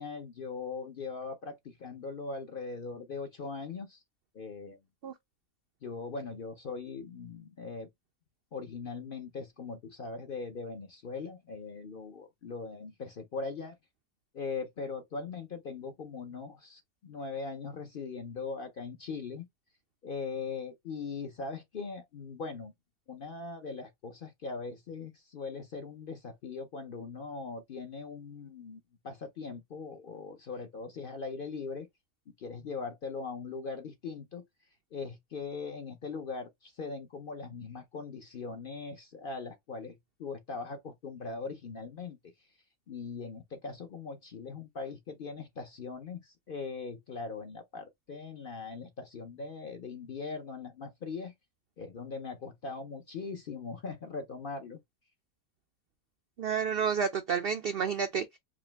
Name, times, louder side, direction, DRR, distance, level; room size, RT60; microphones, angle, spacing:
voice 1, 0.0-4.0 4.3-4.8 5.8-7.9 8.5-13.8 14.3-19.5 20.0-22.7 23.1-31.9 32.4-34.4 34.9-42.2 42.9-51.3 51.8-54.8, left 4 dB, 55° left, 0.6 m, -40 dB
voice 2, 56.4-58.4, right 7 dB, 70° right, 0.5 m, -30 dB
5.0 x 2.0 x 3.3 m
omnidirectional pair, 1.5 m